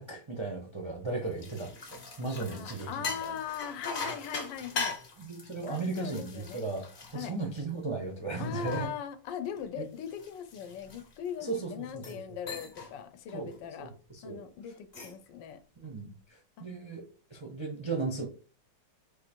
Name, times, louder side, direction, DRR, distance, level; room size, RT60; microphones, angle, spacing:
voice 1, 0.0-3.3 5.2-6.9 7.1-8.9 9.8-9.9 11.4-11.7 12.1-12.2 13.3-13.5 13.8-14.4 15.8-17.0 17.3-18.2, right 3 dB, 50° right, 0.3 m, -36 dB
sound 1, 1.1-7.9 8.4-11.4 11.9-12.2 12.5-12.9 13.3-13.6 14.7-15.3, left 4 dB, 40° left, 0.8 m, -41 dB
voice 2, 2.5-5.0 5.7-6.7 7.1-7.4 8.4-13.9 14.2-15.6 16.6-16.7, left 8 dB, 85° left, 1.3 m, -40 dB
4.4 x 2.5 x 4.3 m
omnidirectional pair, 2.0 m